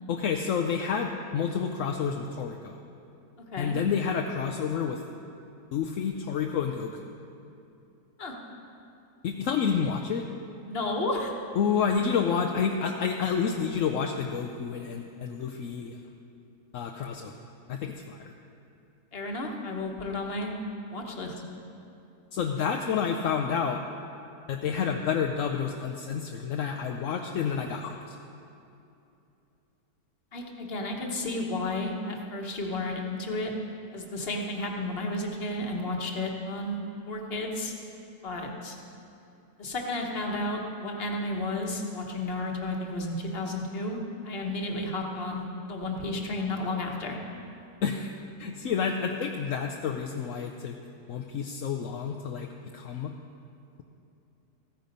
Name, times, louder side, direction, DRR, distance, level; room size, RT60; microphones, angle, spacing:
voice 1, 0.1-2.7 3.6-5.0 5.7-7.0 9.2-10.2 11.6-16.0 16.7-17.3 17.7-18.3 22.3-23.8 24.5-28.2 47.8-48.1 48.4-50.8 51.1-52.5 52.7-53.1, left 6 dB, 65° left, 3 dB, 0.8 m, -29 dB
voice 2, 10.7-11.3 19.1-20.5 20.9-21.3 30.3-33.5 33.9-36.8 37.1-37.7 38.2-38.8 39.6-44.0 44.2-47.2, left 2 dB, 40° left, 1 dB, 1.3 m, -32 dB
14.5 x 9.1 x 5.3 m, 2.7 s
omnidirectional pair, 1.8 m